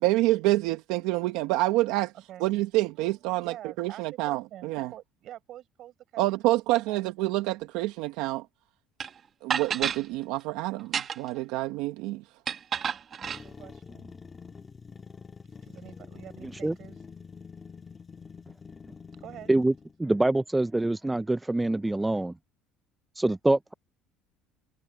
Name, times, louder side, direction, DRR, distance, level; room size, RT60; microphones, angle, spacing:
voice 1, 0.0-2.1 2.4-4.9 6.2-8.4 9.4-12.2, right 18 dB, 80° right, 1.1 m, -27 dB
voice 2, 2.1-2.5 2.8-7.1 13.2-14.1 15.6-17.0 19.2-19.5, right 12 dB, 50° right, 5.9 m, -47 dB
sound 1, 9.0-9.1 9.5-10.0 10.8-11.4 12.5-13.4, right 7 dB, 35° right, 1.0 m, -30 dB
sound 2, 13.2-20.0, left 5 dB, 20° left, 1.6 m, -46 dB
voice 3, 20.0-22.3 23.2-23.7, right 2 dB, 10° right, 0.3 m, -25 dB
cardioid pair, 135°, 0 cm